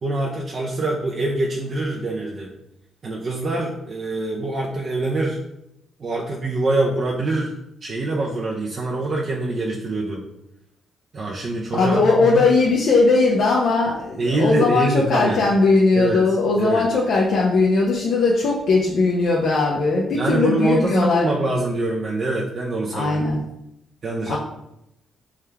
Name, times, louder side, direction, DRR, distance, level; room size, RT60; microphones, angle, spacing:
voice 1, 0.0-2.5 3.0-5.4 6.0-7.5 7.8-10.2 11.1-12.5 14.2-15.5 16.0-16.2 16.6-16.8 20.1-23.2 24.0-24.4, right 2 dB, 45° right, -2 dB, 0.6 m, -24 dB
voice 2, 11.7-21.3 22.9-23.4 24.3-24.4, left 3 dB, 70° left, -3 dB, 0.6 m, -19 dB
3.6 x 3.3 x 3.4 m, 0.83 s
cardioid pair, 90°, 0 cm